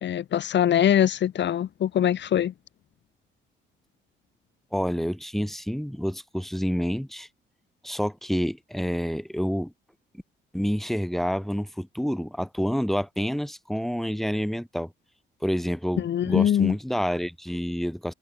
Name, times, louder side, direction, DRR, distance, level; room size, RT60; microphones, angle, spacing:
voice 1, 0.0-2.5 16.0-16.8, left 10 dB, 65° left, 1.8 m, -23 dB
voice 2, 4.7-7.3 7.8-9.7 10.5-14.9 15.4-18.1, equal, ahead, 4.2 m, -28 dB
cardioid pair, 90°, 20 cm